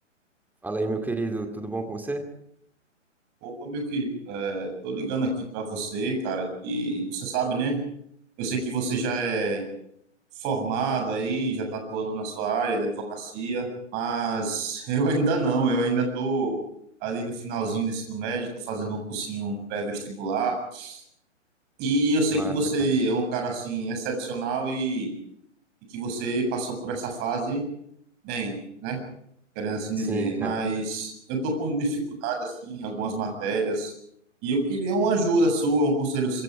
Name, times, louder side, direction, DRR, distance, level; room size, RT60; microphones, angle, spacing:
voice 1, 0.6-2.2 22.3-22.9 30.0-30.6, right 2 dB, 5° right, 5 dB, 2.5 m, -30 dB
voice 2, 3.4-7.8 8.4-9.6 10.4-16.6 17.0-21.0 21.8-25.1 25.9-27.7 28.2-29.0 29.6-33.9 34.4-36.4, right 3 dB, 25° right, 4 dB, 7.3 m, -27 dB
26.0 x 23.5 x 5.0 m, 0.72 s
figure-of-eight pair, 130°, 38 cm